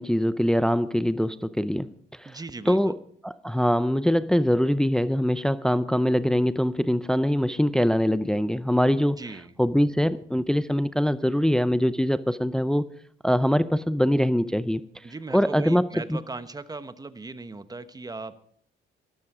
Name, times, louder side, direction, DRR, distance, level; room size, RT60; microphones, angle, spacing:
voice 1, 0.0-1.9 2.2-2.3 2.7-3.0 3.2-9.2 9.6-12.9 13.2-14.8 15.3-16.2, equal, 5° left, 14 dB, 0.5 m, -23 dB
voice 2, 2.2-2.9 9.2-9.5 15.0-18.4, right 3 dB, 20° right, 12 dB, 1.0 m, -38 dB
13.5 x 12.5 x 4.9 m, 0.62 s
cardioid pair, 90°, 20 cm